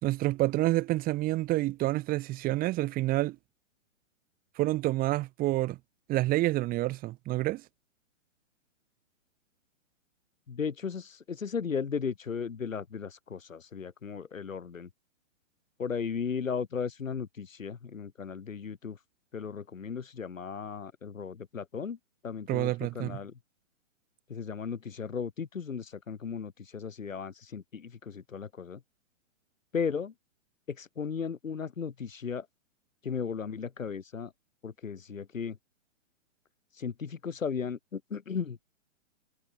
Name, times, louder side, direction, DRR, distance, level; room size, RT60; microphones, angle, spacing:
voice 1, 0.0-3.4 4.6-5.8 6.1-7.6 22.5-23.2, right 17 dB, 20° right, 4.6 m, -28 dB
voice 2, 10.5-14.9 15.8-19.0 19.3-22.0 22.2-23.3 24.3-28.8 29.7-30.1 30.7-32.5 33.0-34.3 34.6-35.6 36.8-38.6, left 6 dB, 85° left, 5.3 m, -36 dB
hypercardioid pair, 150°, 38 cm